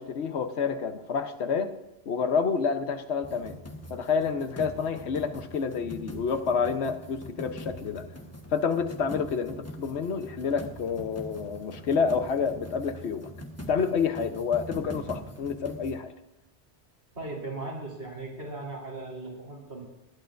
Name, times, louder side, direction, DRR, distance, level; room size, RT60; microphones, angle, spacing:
voice 1, 0.0-1.7 2.1-3.6 3.9-8.1 8.5-13.3 13.7-16.1, left 5 dB, 85° left, 8 dB, 1.2 m, -28 dB
sound 1, 3.2-16.0, equal, 15° left, 1.1 m, -43 dB
voice 2, 17.1-19.8, right 2 dB, 80° right, -3 dB, 3.9 m, -38 dB
19.5 x 11.5 x 2.5 m, 0.97 s
omnidirectional pair, 1.1 m